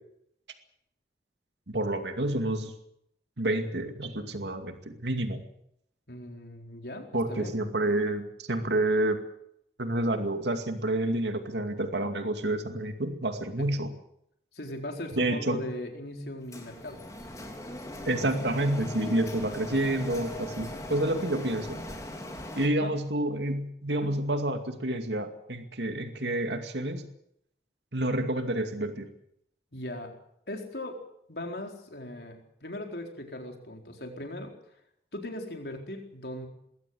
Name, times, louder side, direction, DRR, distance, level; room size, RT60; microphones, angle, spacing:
voice 1, 1.7-2.7 3.4-5.4 7.1-9.2 9.8-13.9 15.1-15.6 18.1-21.8 22.5-27.1 27.9-29.1, right 1 dB, 80° right, 7 dB, 2.4 m, -29 dB
voice 2, 6.1-7.8 13.6-13.7 14.5-17.0 20.6-20.8 22.8-22.9 23.9-24.1 29.7-30.1 30.5-31.0 31.3-34.5 35.1-36.5, left 1 dB, 65° left, 3 dB, 4.2 m, -39 dB
Printer, 16.5-22.7, left 1 dB, 20° left, 3.2 m, -39 dB
21.5 x 17.0 x 7.9 m, 0.75 s
head